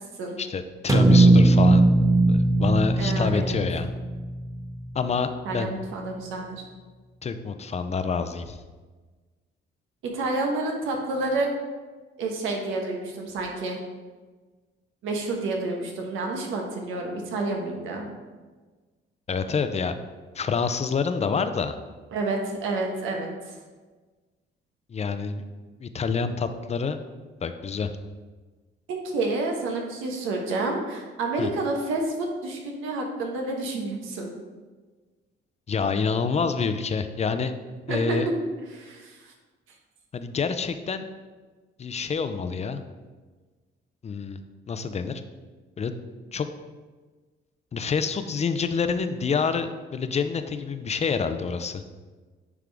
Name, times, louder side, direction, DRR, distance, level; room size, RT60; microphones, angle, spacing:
voice 1, 0.4-1.9 2.3-3.9 4.9-5.7 7.2-8.6 19.3-19.9 20.3-21.8 24.9-25.4 25.8-27.0 27.4-27.9 31.4-31.5 35.7-37.5 37.9-38.3 40.1-41.1 41.8-42.8 44.0-44.4 44.7-45.2 45.8-45.9 46.3-46.5 47.7-51.8, left 5 dB, 35° left, 9 dB, 0.5 m, -27 dB
sound 1, 0.9-5.1, right 2 dB, 15° right, 0.4 m, -19 dB
voice 2, 3.0-3.6 5.4-6.6 10.1-11.5 12.2-13.8 15.0-18.1 22.1-23.6 28.9-34.3 37.9-38.2 38.7-39.3, right 2 dB, 90° right, 1 dB, 1.2 m, -29 dB
9.6 x 3.6 x 3.5 m, 1.3 s
cardioid pair, 90°, 20 cm